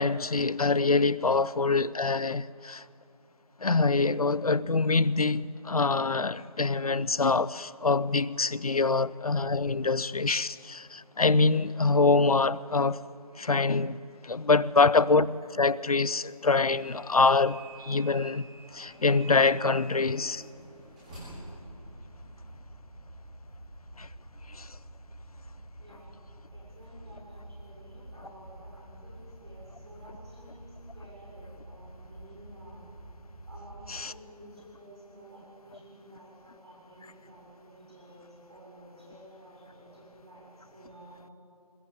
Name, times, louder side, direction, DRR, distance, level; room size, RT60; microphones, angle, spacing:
voice 1, 0.0-2.8 3.6-13.0 13.4-14.0 14.2-18.5 18.7-20.4 24.0-24.1 24.5-24.7 33.9-34.1, left 3 dB, 65° left, 0.7 m, -25 dB
sound 1, 16.7-22.5, right 2 dB, 10° right, 4.9 m, -48 dB
sound 2, 21.6-34.0, right 1 dB, 80° right, 2.0 m, -48 dB
voice 2, 25.8-26.1 26.5-32.8 33.5-41.2, right 1 dB, 40° right, 7.0 m, -52 dB
21.5 x 20.5 x 8.2 m
figure-of-eight pair, 175°, 20 cm